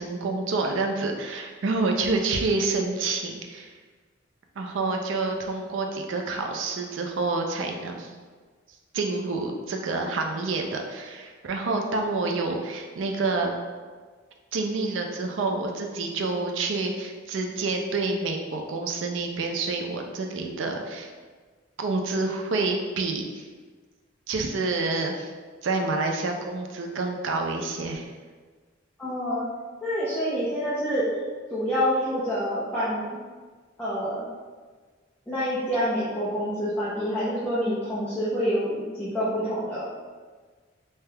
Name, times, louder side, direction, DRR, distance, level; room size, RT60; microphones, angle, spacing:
voice 1, 0.0-3.7 4.6-8.1 8.9-13.5 14.5-21.1 21.8-23.5 24.3-25.3 25.6-28.1, right 3 dB, 75° right, 3 dB, 0.4 m, -28 dB
voice 2, 29.0-29.5 29.8-31.1 31.5-33.1 33.8-34.3 35.3-39.8, equal, 10° left, -11 dB, 0.5 m, -27 dB
3.3 x 2.8 x 2.2 m, 1.5 s
head